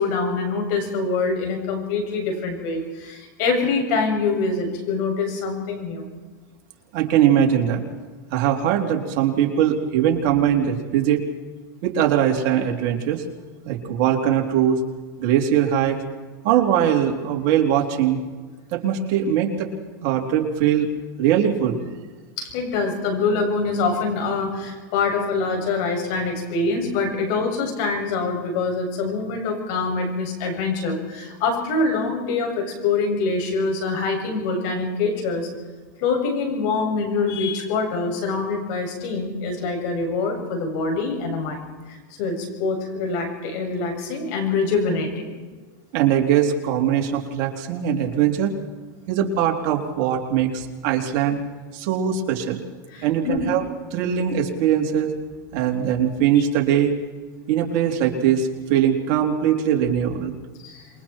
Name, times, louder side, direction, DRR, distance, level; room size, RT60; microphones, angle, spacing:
voice 1, 0.0-6.1 22.4-35.5 36.0-45.3 52.9-53.4 60.6-60.8, left 4 dB, 55° left, 3 dB, 6.9 m, -25 dB
voice 2, 6.9-7.8 8.3-11.2 11.8-13.2 13.7-14.8 15.2-16.0 16.4-18.2 18.7-19.7 20.0-20.9 21.2-21.9 45.9-48.5 49.1-51.4 51.7-52.6 53.0-53.6 53.9-55.1 55.5-56.9 57.5-60.3, right 9 dB, 55° right, 2 dB, 3.4 m, -21 dB
28.0 x 22.5 x 4.5 m, 1.4 s
supercardioid pair, 135°, 10 cm